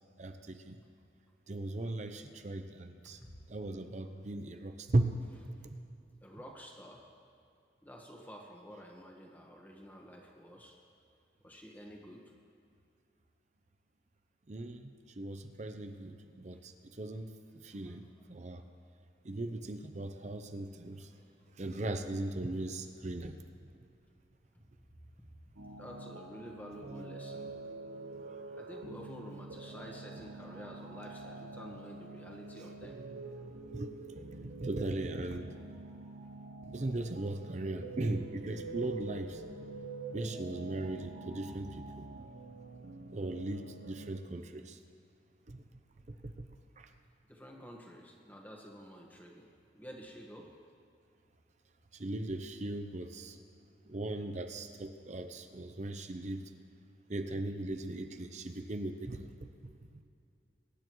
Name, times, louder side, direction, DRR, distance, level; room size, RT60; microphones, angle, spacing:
voice 1, 0.2-0.7 1.5-3.2 3.5-5.1 5.6-5.8 14.5-16.7 17.0-17.3 17.6-18.0 18.3-18.6 19.2-21.1 21.6-23.3 33.7-33.9 34.6-35.5 36.6-39.4 40.1-42.0 43.1-44.8 45.5-45.6 46.2-46.5 46.8-46.9 52.0-53.4 53.9-56.4 57.1-59.3, right 2 dB, 40° right, 7 dB, 0.6 m, -37 dB
voice 2, 6.2-7.0 7.8-10.8 11.4-12.2 16.5-16.6 17.7-18.3 18.6-18.7 20.9-21.1 21.6-21.7 25.2-25.3 25.8-27.5 28.5-33.0 47.3-50.5, equal, 10° left, 0 dB, 1.4 m, -50 dB
sound 1, 25.6-44.1, right 3 dB, 75° right, 1.0 m, -46 dB
23.0 x 10.0 x 3.1 m, 2.5 s
head